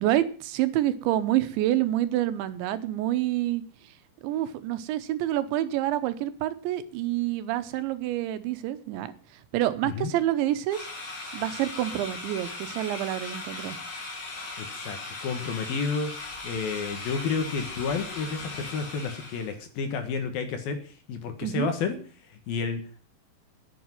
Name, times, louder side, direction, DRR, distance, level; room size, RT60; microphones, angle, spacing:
voice 1, 0.0-3.6 4.2-9.1 9.5-10.9 11.3-13.8 21.4-21.7, right 13 dB, 85° right, 12 dB, 3.3 m, -27 dB
sound 1, 10.7-19.5, left 3 dB, 45° left, 5.0 m, -38 dB
voice 2, 14.6-16.2 16.4-23.0, left 5 dB, 65° left, 7 dB, 3.0 m, -31 dB
10.5 x 8.5 x 9.2 m, 0.42 s
omnidirectional pair, 5.2 m